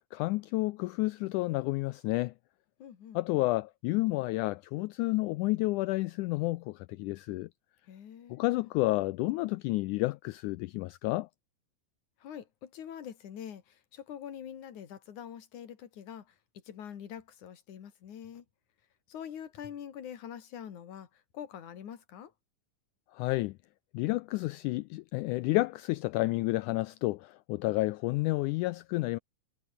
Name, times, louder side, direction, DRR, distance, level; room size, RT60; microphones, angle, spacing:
voice 1, 0.0-2.3 3.2-7.5 8.3-11.3 23.1-23.6 23.9-29.2, left 20 dB, 85° left, 1.8 m, -30 dB
voice 2, 2.8-3.2 7.9-8.7 12.2-18.5 19.1-22.3, left 9 dB, 60° left, 3.6 m, -45 dB
omnidirectional pair, 4.0 m